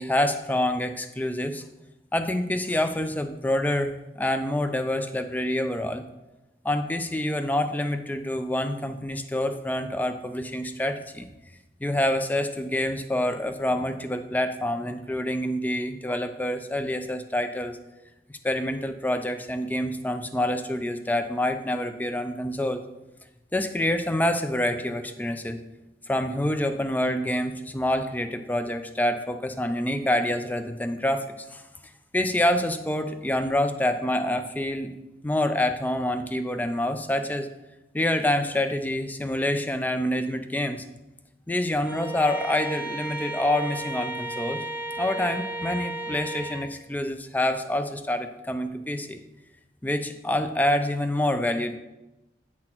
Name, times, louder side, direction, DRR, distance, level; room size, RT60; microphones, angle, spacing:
voice 1, 0.0-1.6 2.1-6.0 6.6-11.3 11.8-17.8 18.3-22.8 23.5-25.6 26.1-31.2 31.5-31.6 32.1-34.9 35.2-37.5 37.9-40.8 41.5-44.6 45.0-49.2 49.8-51.8, left 1 dB, 10° left, 8 dB, 0.4 m, -27 dB
Bowed string instrument, 41.8-46.7, right 1 dB, 10° right, 0.8 m, -34 dB
8.6 x 5.9 x 2.9 m, 1.0 s
head